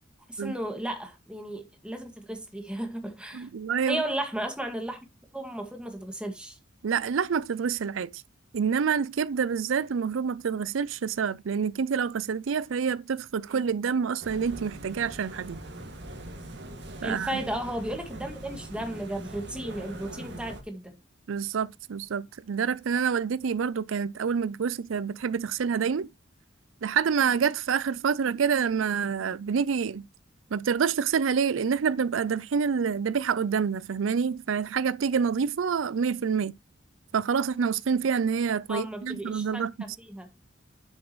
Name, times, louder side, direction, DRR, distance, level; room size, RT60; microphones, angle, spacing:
voice 1, 0.3-3.5 3.9-5.0 5.3-6.6 17.0-21.0 38.7-39.6 40.1-40.3, right 1 dB, 5° right, 1.9 m, -34 dB
voice 2, 3.3-4.0 6.8-8.2 8.5-15.6 17.0-17.4 21.3-26.1 26.8-30.0 30.5-36.5 37.1-39.7, right 6 dB, 85° right, 0.4 m, -27 dB
sound 1, 14.2-20.6, right 1 dB, 60° right, 2.2 m, -42 dB
9.6 x 7.4 x 3.1 m
head